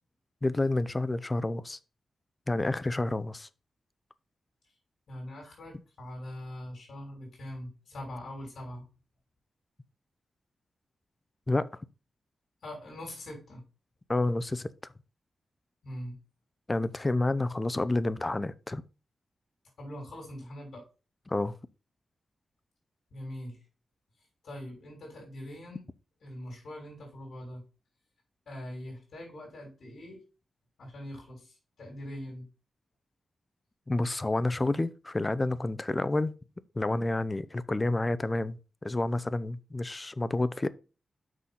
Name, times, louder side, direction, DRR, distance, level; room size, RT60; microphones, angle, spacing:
voice 1, 0.4-1.8 2.5-3.5 11.5-11.7 14.1-14.7 16.7-18.8 21.3-21.5 33.9-36.3 36.8-40.7, left 2 dB, 20° left, 0.5 m, -29 dB
voice 2, 5.1-8.9 12.6-13.6 15.8-16.2 19.8-20.9 23.1-23.6 24.4-25.9 26.2-27.6 28.5-30.2 30.8-32.4, left 1 dB, 65° left, 3.6 m, -42 dB
6.2 x 5.9 x 5.4 m
wide cardioid pair, 130°, 0 cm